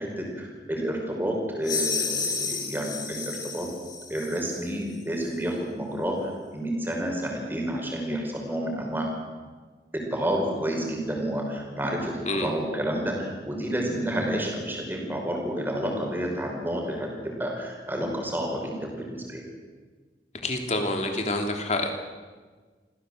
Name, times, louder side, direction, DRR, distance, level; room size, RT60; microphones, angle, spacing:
voice 1, 0.0-3.7 4.1-9.1 9.9-17.1 17.4-19.4, right 1 dB, 10° right, 0 dB, 5.3 m, -30 dB
sound 1, 1.6-4.6, left 4 dB, 25° left, 3.3 m, -31 dB
voice 2, 20.4-21.9, left 2 dB, 40° left, 4 dB, 3.1 m, -27 dB
26.5 x 16.0 x 7.9 m, 1.4 s
head